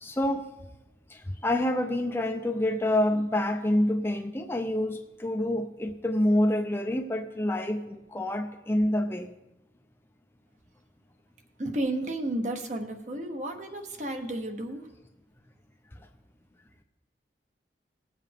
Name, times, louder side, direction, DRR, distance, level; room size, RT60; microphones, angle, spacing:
voice 1, 0.0-0.5 1.1-9.3, left 1 dB, 15° left, 5 dB, 0.5 m, -27 dB
voice 2, 11.6-14.8, right 1 dB, 40° right, 5 dB, 1.0 m, -32 dB
19.0 x 7.5 x 3.5 m, 0.99 s
head